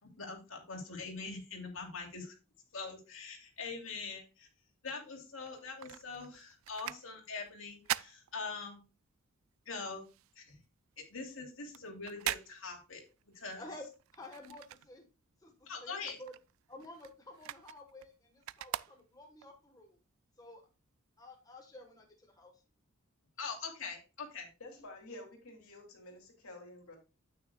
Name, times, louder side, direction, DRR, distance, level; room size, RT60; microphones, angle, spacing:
voice 1, 0.0-2.3 2.7-4.5 4.8-8.8 9.7-10.1 10.4-10.6 11.1-13.0 13.3-13.6 15.7-16.2 23.4-24.5, left 4 dB, 60° left, 1 dB, 2.9 m, -43 dB
sound 1, 5.4-9.1 9.4-15.4 15.7-19.5 20.0-20.1, right 13 dB, 65° right, 0.3 m, -43 dB
voice 2, 13.5-15.1 15.4-16.3 16.7-20.0 20.4-20.6 21.2-22.6, left 1 dB, 15° left, 2 dB, 1.3 m, -51 dB
voice 3, 24.6-27.0, left 1 dB, 80° left, 3 dB, 2.9 m, -50 dB
9.3 x 8.9 x 2.3 m, 0.30 s
head